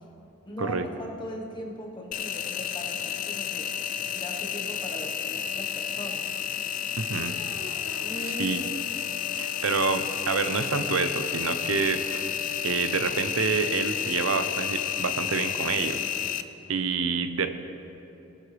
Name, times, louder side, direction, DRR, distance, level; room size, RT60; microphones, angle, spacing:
voice 1, 0.4-3.7 4.1-6.3 8.0-8.8, equal, 20° left, -1 dB, 1.2 m, -39 dB
Engine, 2.1-16.4, left 9 dB, 40° left, 0.4 m, -31 dB
voice 2, 7.0-7.3 8.4-8.6 9.4-12.3 12.6-16.0 16.7-17.5, right 4 dB, 80° right, 9 dB, 0.7 m, -27 dB
sound 1, 7.2-14.8, left 5 dB, 85° left, 1.7 m, -45 dB
20.0 x 8.8 x 3.3 m, 2.7 s
head